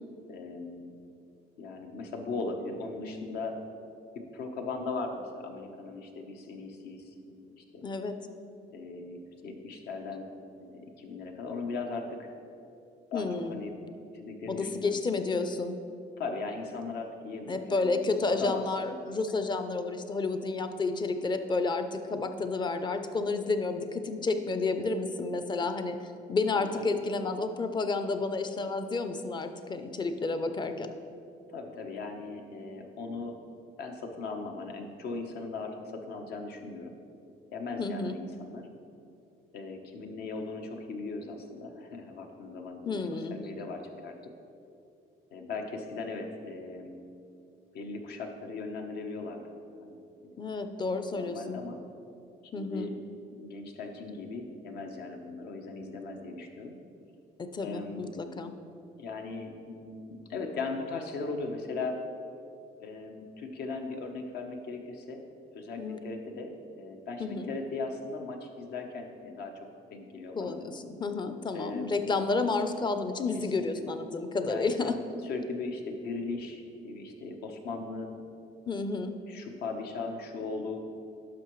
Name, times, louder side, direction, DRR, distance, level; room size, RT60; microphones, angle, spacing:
voice 1, 0.3-0.9 1.6-3.6 4.3-7.9 8.7-10.3 10.6-12.3 13.1-13.7 14.1-15.0 16.2-18.0 18.3-19.1 26.5-26.9 31.5-33.4 33.8-37.0 37.5-38.7 39.5-44.1 45.3-47.0 47.7-49.4 49.8-50.4 50.8-51.8 52.5-53.0 53.3-56.8 57.6-58.1 59.0-62.0 62.8-65.2 65.5-69.5 69.9-70.6 71.5-72.1 73.3-73.8 74.5-74.9 75.2-78.1 79.3-80.8, left 3 dB, 70° left, 4 dB, 1.0 m, -38 dB
voice 2, 7.8-8.2 13.1-13.6 14.5-15.8 17.5-30.9 37.8-38.2 42.9-43.3 50.4-51.6 52.5-52.9 57.4-58.5 65.8-66.0 67.2-67.5 70.4-75.0 78.7-79.2, left 3 dB, 25° left, 8 dB, 0.5 m, -31 dB
10.5 x 6.1 x 3.1 m, 2.5 s
cardioid pair, 110°, 17 cm